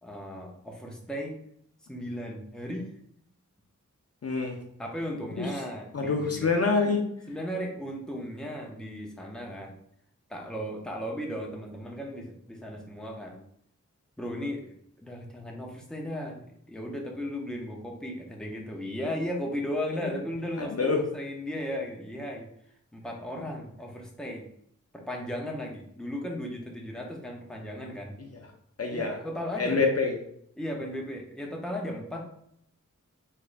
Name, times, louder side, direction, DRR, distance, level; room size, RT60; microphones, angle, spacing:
voice 1, 0.0-1.3 1.9-3.0 4.8-6.5 7.3-9.8 10.3-13.4 14.2-14.6 15.0-22.5 22.9-24.5 25.1-28.2 28.9-29.8 30.6-32.2, equal, ahead, 0 dB, 0.8 m, -36 dB
voice 2, 4.2-4.6 5.4-5.5 5.9-7.0 20.0-20.1 20.6-21.0 28.8-29.2 29.6-30.1, left 4 dB, 50° left, 2 dB, 0.6 m, -26 dB
3.5 x 3.1 x 2.5 m, 0.69 s
wide cardioid pair, 50°, 32 cm